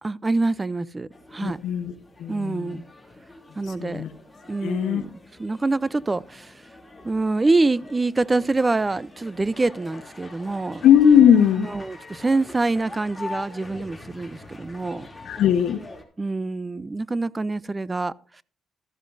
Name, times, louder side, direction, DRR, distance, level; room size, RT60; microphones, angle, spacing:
voice 1, 0.0-1.6 2.3-2.9 3.6-4.0 4.5-6.5 7.0-10.8 11.6-15.1 16.2-18.4, right 3 dB, 20° right, 0.4 m, -25 dB
sound 1, 1.1-16.0, left 2 dB, 10° left, 2.7 m, -44 dB
voice 2, 1.4-1.9 2.2-2.8 3.8-4.1 4.6-5.0 10.8-11.7 15.3-15.8, left 8 dB, 75° left, 1.2 m, -18 dB
13.0 x 12.5 x 2.6 m
cardioid pair, 90°, 0 cm